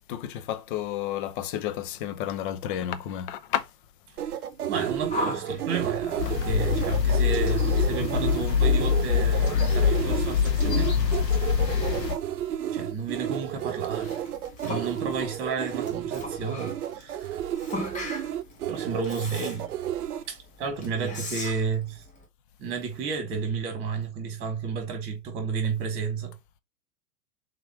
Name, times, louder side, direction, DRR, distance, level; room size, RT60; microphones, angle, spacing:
voice 1, 0.1-3.7 9.6-9.8 14.0-14.1, left 11 dB, 35° left, 0.5 m, -31 dB
sound 1, 4.2-20.2, right 11 dB, 65° right, 0.7 m, -32 dB
voice 2, 4.7-11.6 12.7-14.2 14.6-17.4 18.7-19.7 20.3-22.0 22.6-26.3, right 5 dB, 25° right, 1.5 m, -32 dB
Yell, 5.1-22.3, left 2 dB, 15° left, 0.9 m, -41 dB
sound 2, 6.2-12.1, left 7 dB, 75° left, 1.7 m, -24 dB
3.7 x 3.1 x 4.2 m
figure-of-eight pair, 105°, 49 cm